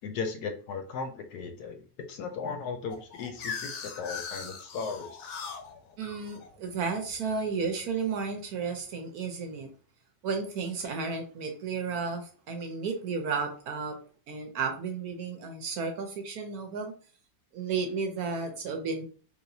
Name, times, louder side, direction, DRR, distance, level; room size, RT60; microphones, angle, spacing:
voice 1, 0.0-5.4, left 5 dB, 70° left, 5 dB, 1.1 m, -37 dB
sound 1, 2.9-7.7, left 6 dB, 85° left, 1.3 m, -40 dB
voice 2, 6.0-9.7 10.2-14.0 14.3-16.9 17.5-19.0, right 5 dB, 70° right, 4 dB, 1.0 m, -33 dB
3.4 x 2.9 x 2.6 m, 0.40 s
omnidirectional pair, 1.9 m